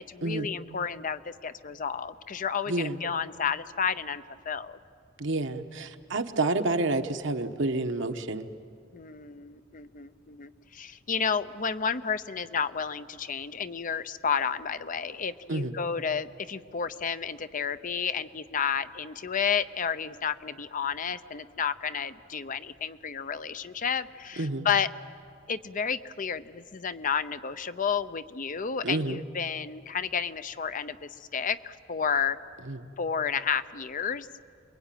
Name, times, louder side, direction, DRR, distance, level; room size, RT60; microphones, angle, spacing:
voice 1, 0.0-4.8 8.9-24.9 25.5-32.4 33.0-34.3, left 6 dB, 45° left, 13 dB, 0.7 m, -31 dB
voice 2, 5.2-8.5 15.5-15.7 24.4-24.7 28.8-29.2 32.7-32.8, right 2 dB, 70° right, 7 dB, 1.2 m, -29 dB
28.5 x 22.5 x 9.1 m, 2.3 s
head